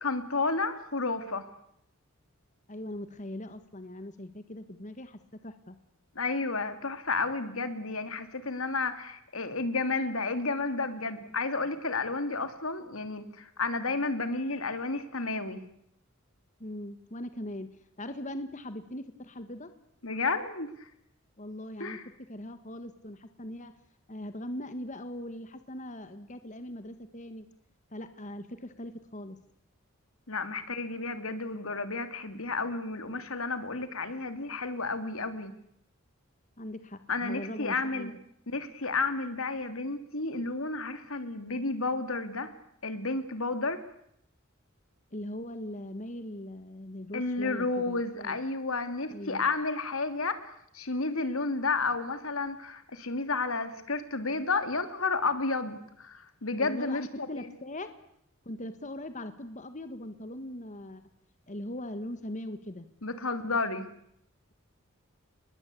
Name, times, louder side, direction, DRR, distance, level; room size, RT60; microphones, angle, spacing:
voice 1, 0.0-1.5 6.1-15.6 20.0-20.9 21.8-22.0 30.3-35.5 37.1-38.1 38.5-42.5 42.8-43.8 47.1-57.4 63.0-63.9, left 3 dB, 80° left, 10 dB, 2.7 m, -31 dB
voice 2, 2.7-5.8 16.6-17.7 18.0-19.7 21.4-22.0 22.3-23.7 24.1-27.5 27.9-29.4 36.6-38.2 45.1-48.4 49.1-49.4 56.6-57.9 58.4-61.0 61.5-62.9, left 1 dB, 35° left, 10 dB, 1.6 m, -40 dB
28.5 x 21.5 x 8.5 m, 0.73 s
head